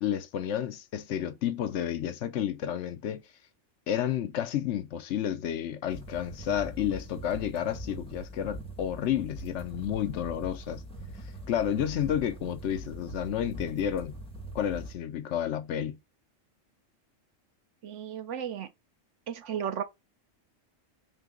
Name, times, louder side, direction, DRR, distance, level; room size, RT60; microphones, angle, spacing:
voice 1, 0.0-3.2 3.9-10.8 11.5-14.2 14.5-16.0, left 10 dB, 70° left, 0.9 m, -31 dB
sound 1, 5.9-14.9, right 1 dB, 5° left, 1.2 m, -42 dB
voice 2, 17.8-18.7 19.3-19.8, right 8 dB, 70° right, 1.0 m, -34 dB
3.8 x 2.8 x 3.6 m
omnidirectional pair, 1.3 m